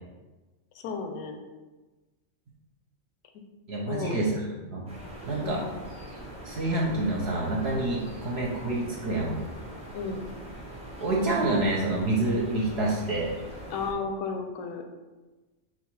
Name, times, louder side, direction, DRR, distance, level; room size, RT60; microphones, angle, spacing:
voice 1, 0.7-1.4 3.9-4.2 5.4-5.8 9.9-10.2 13.7-14.9, left 4 dB, 80° left, 5 dB, 1.0 m, -33 dB
voice 2, 3.7-4.3 4.7-4.8 5.3-5.6 6.4-9.4 11.0-13.3, right 2 dB, 60° right, -3 dB, 0.9 m, -27 dB
sound 1, 4.9-13.9, right 1 dB, 5° right, 0.6 m, -42 dB
4.0 x 2.5 x 4.6 m, 1.2 s
omnidirectional pair, 1.4 m